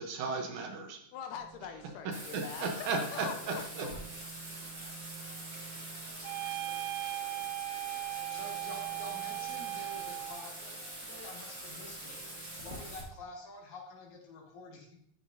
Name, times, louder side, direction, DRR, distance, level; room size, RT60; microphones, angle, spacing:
voice 1, 0.0-1.0 2.3-3.9, right 3 dB, 70° right, 3 dB, 2.3 m, -35 dB
voice 2, 1.1-4.0, left 8 dB, 80° left, 7 dB, 2.0 m, -44 dB
sound 1, 1.3-12.6, right 7 dB, 45° right, 1.6 m, -54 dB
Bathtub (filling or washing), 2.1-13.0, right 1 dB, 20° right, 1.4 m, -45 dB
sound 2, 6.2-10.4, right 17 dB, 90° right, 2.3 m, -38 dB
voice 3, 7.7-15.0, left 2 dB, 65° left, -1 dB, 2.9 m, -49 dB
12.5 x 6.0 x 2.7 m, 0.69 s
omnidirectional pair, 3.9 m